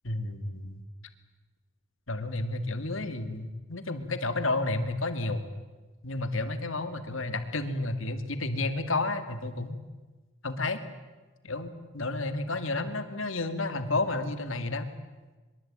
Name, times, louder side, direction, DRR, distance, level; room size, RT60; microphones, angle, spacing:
voice 1, 0.0-0.7 2.1-5.5 6.0-9.8 10.4-10.8 11.4-14.9, left 2 dB, 75° left, 9 dB, 2.4 m, -31 dB
23.5 x 23.5 x 9.0 m, 1.3 s
head